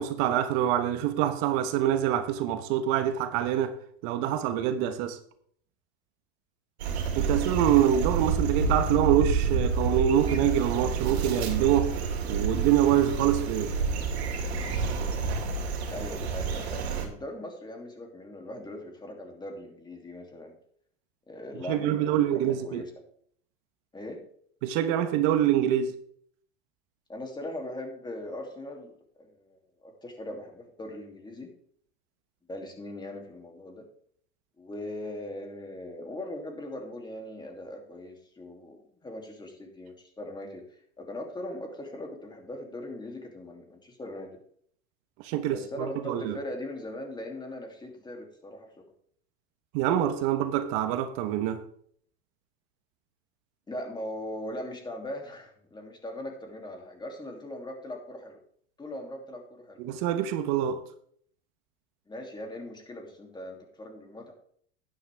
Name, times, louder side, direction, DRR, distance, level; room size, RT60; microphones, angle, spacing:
voice 1, 0.0-3.8 4.0-5.2 7.1-11.9 12.3-13.7 21.7-22.8 24.6-25.9 45.2-46.4 49.7-51.6 59.8-60.8, right 11 dB, 55° right, 1.1 m, -25 dB
sound 1, 6.8-17.1, right 4 dB, 85° right, 2.6 m, -29 dB
voice 2, 15.9-20.6 21.3-22.9 23.9-24.2 27.1-28.9 29.2-31.5 32.5-33.9 34.6-44.4 45.5-48.7 53.7-58.4 58.8-59.8 62.1-64.3, left 1 dB, 15° left, 2.8 m, -40 dB
11.5 x 10.5 x 3.5 m
hypercardioid pair, 110°, 31 cm